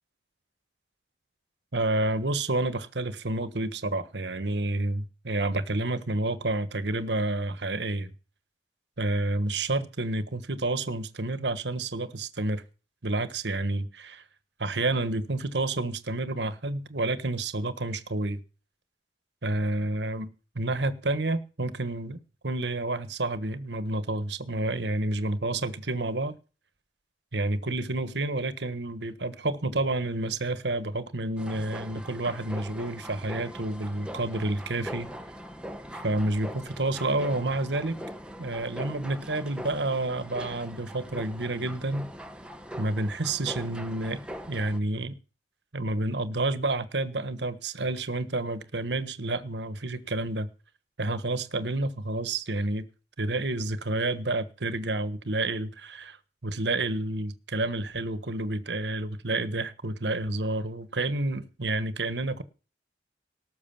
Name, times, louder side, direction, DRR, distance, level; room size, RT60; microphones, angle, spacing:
voice 1, 1.7-8.1 9.0-12.6 13.0-14.2 14.6-18.4 19.4-20.3 20.5-22.2 22.4-26.4 27.3-35.1 36.0-38.0 38.4-42.1 42.8-44.2 44.5-45.1 45.7-50.5 51.0-52.9 53.2-56.2 56.4-62.4, right 2 dB, 75° right, 1.5 m, -29 dB
sound 1, 31.4-44.8, equal, 5° right, 1.2 m, -41 dB
18.5 x 6.6 x 7.1 m
head